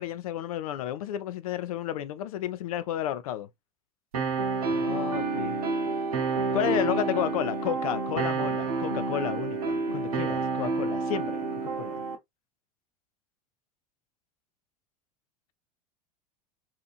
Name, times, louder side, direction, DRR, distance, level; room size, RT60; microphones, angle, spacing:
voice 1, 0.0-3.5 4.7-5.6 6.5-12.0, left 11 dB, 70° left, 0.4 m, -32 dB
sound 1, 4.1-12.1, right 4 dB, 75° right, 0.9 m, -29 dB
2.8 x 2.5 x 2.4 m
figure-of-eight pair, 80°, 19 cm